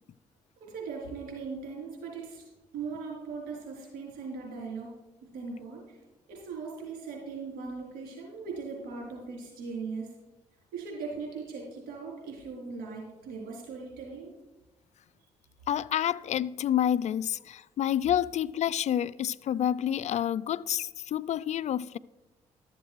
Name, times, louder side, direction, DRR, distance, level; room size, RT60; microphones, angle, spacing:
voice 1, 0.6-2.4 2.7-4.9 5.3-5.8 6.3-10.1 10.7-14.3, right 4 dB, 80° right, 3.9 m, -39 dB
voice 2, 15.7-22.0, left 10 dB, 55° left, 0.4 m, -28 dB
12.5 x 7.3 x 4.6 m
supercardioid pair, 55°, 14 cm